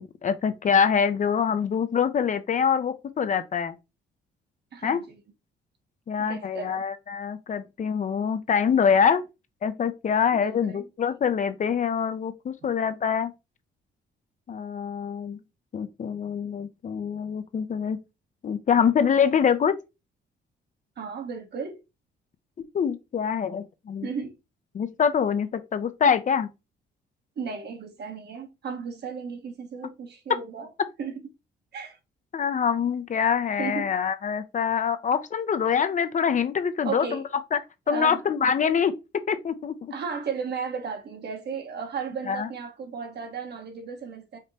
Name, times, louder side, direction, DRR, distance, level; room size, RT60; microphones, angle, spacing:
voice 1, 0.0-3.7 4.8-5.0 6.1-9.2 9.6-13.3 14.5-15.4 15.7-18.0 18.4-19.7 22.7-24.1 24.7-26.5 32.3-37.2 37.5-37.6 37.9-38.9 39.3-39.9 42.3-42.5, left 7 dB, 40° left, 0.5 m, -25 dB
voice 2, 4.7-5.0 6.2-6.8 10.3-10.9 21.0-21.8 24.0-24.3 27.4-30.7 31.0-31.2 31.7-32.0 33.6-33.9 36.8-37.2 37.9-38.2 39.9-44.4, right 6 dB, 55° right, 1.0 m, -34 dB
5.1 x 2.1 x 3.9 m
cardioid pair, 90°, 20 cm